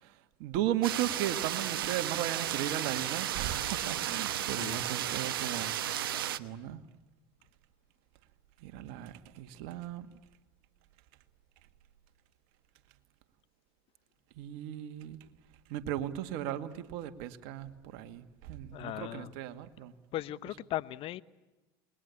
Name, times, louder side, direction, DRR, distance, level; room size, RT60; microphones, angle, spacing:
voice 1, 0.0-6.1 6.4-6.8 8.6-10.1 14.4-15.2 15.7-19.9, right 12 dB, 65° right, 9 dB, 2.1 m, -36 dB
sound 1, 0.8-6.4, right 11 dB, 85° right, 1.1 m, -34 dB
voice 2, 18.7-19.3 20.1-21.2, left 14 dB, 50° left, 16 dB, 1.0 m, -38 dB
29.0 x 21.5 x 8.6 m, 1.1 s
hypercardioid pair, 85°, 12 cm